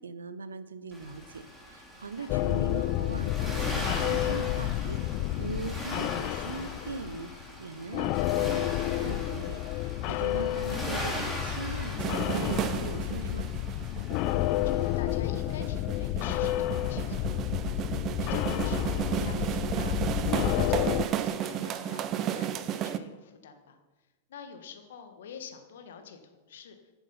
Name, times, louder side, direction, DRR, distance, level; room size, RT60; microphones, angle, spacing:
voice 1, 0.0-7.3 7.6-13.5, right 4 dB, 80° right, 13 dB, 0.7 m, -41 dB
Accelerating revving vroom, 0.9-14.9, equal, 5° right, 2.6 m, -40 dB
voice 2, 1.9-2.3 10.1-10.3 13.9-20.1 20.5-23.8 24.3-26.8, left 6 dB, 65° left, 6 dB, 1.4 m, -48 dB
sound 1, 2.3-7.6 7.9-21.1, left 15 dB, 45° left, 0.3 m, -30 dB
sound 2, 12.0-23.0, right 10 dB, 35° right, 0.6 m, -33 dB
9.1 x 7.2 x 5.6 m, 1.2 s
figure-of-eight pair, 95°, 0 cm